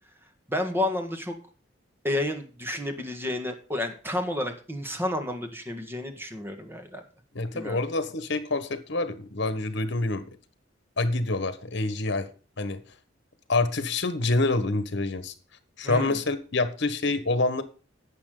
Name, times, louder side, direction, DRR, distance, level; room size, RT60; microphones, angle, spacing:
voice 1, 0.5-1.4 2.0-7.0 7.5-7.8 15.8-16.2, left 1 dB, 10° right, 5 dB, 1.8 m, -31 dB
voice 2, 7.3-10.4 11.0-12.3 12.6-12.8 13.5-15.3 15.8-17.6, left 2 dB, 65° left, 12 dB, 1.4 m, -27 dB
11.5 x 8.5 x 3.9 m, 0.36 s
head